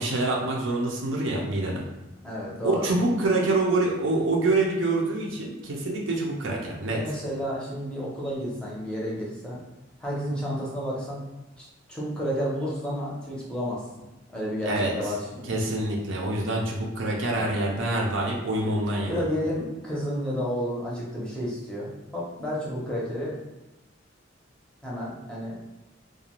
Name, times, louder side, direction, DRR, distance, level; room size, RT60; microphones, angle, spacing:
voice 1, 0.0-1.8 2.6-7.0 14.6-14.9 15.5-19.2, right 2 dB, 70° right, -1 dB, 0.5 m, -26 dB
voice 2, 2.2-2.9 6.8-9.6 10.0-11.2 11.6-13.8 14.3-15.6 17.3-17.5 19.1-23.5 24.8-25.6, equal, 5° left, -6 dB, 0.6 m, -31 dB
2.4 x 2.2 x 2.9 m, 1.0 s
head